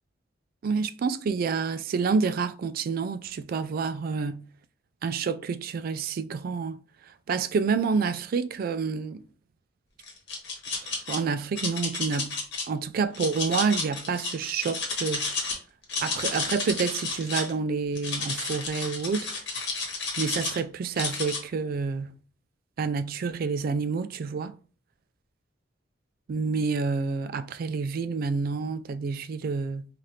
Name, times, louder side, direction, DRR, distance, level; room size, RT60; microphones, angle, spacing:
voice 1, 0.6-4.4 5.0-6.8 7.3-9.2 10.8-12.4 12.7-15.3 16.0-19.3 20.2-22.1 22.8-24.6 26.3-29.9, right 5 dB, 50° right, 0.3 m, -28 dB
sound 1, 10.0-11.2 11.6-12.6 13.1-15.6 15.8-17.5 18.0-20.6 21.0-21.4, left 4 dB, 65° left, 1.2 m, -31 dB
4.9 x 2.5 x 2.8 m
head